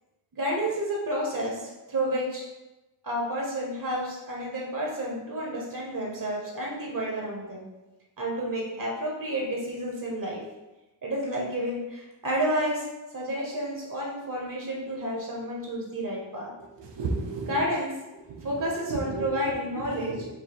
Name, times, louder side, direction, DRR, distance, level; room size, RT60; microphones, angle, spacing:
voice 1, 0.3-2.4 3.0-7.7 8.2-10.4 11.0-12.9 13.1-16.5 17.5-17.9 18.4-20.3, equal, 50° right, -2 dB, 0.9 m, -30 dB
voice 2, 16.6-17.6 18.3-18.6 18.9-19.5 19.9-20.3, right 4 dB, 80° right, 2 dB, 0.8 m, -34 dB
4.4 x 2.7 x 4.2 m, 1.0 s
wide cardioid pair, 160°, 43 cm